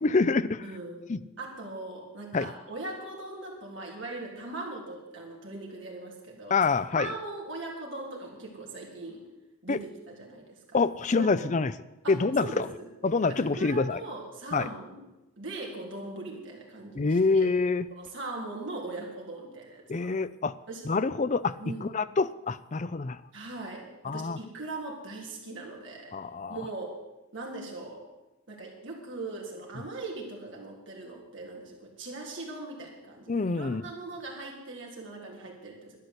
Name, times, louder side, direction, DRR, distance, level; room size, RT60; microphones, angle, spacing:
voice 1, 0.0-0.7 1.1-1.2 2.3-2.5 6.5-7.1 9.7-9.8 10.7-11.7 12.1-12.7 13.0-14.0 14.5-14.7 16.9-17.9 19.9-20.6 20.8-23.2 24.0-24.4 26.1-26.6 33.3-33.9, left 4 dB, 35° left, 14 dB, 0.5 m, -26 dB
voice 2, 0.6-1.0 1.4-6.6 6.9-9.2 9.6-10.8 11.1-11.6 12.0-12.2 12.4-12.9 13.2-15.0 15.4-17.5 18.0-20.1 20.7-20.8 21.6-21.9 23.3-26.1 26.5-26.9 27.3-28.0 28.5-36.0, right 2 dB, 60° right, -1 dB, 3.7 m, -40 dB
12.0 x 10.0 x 8.1 m, 1.0 s
head